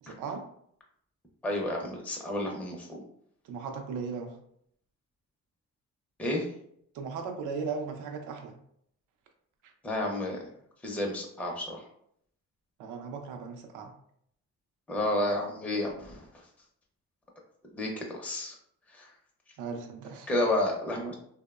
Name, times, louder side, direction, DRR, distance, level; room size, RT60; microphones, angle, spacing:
voice 1, 0.0-0.5 3.4-4.4 6.9-8.6 9.6-9.7 12.8-13.9 19.6-20.3, right 5 dB, 85° right, 5 dB, 0.5 m, -37 dB
voice 2, 1.4-2.9 6.2-6.5 9.8-10.4 10.8-11.9 14.9-16.2 17.7-18.5 18.9-19.1 20.3-21.1, left 1 dB, 5° left, -1 dB, 0.4 m, -31 dB
2.7 x 2.0 x 2.3 m, 0.69 s
cardioid pair, 90°, 30 cm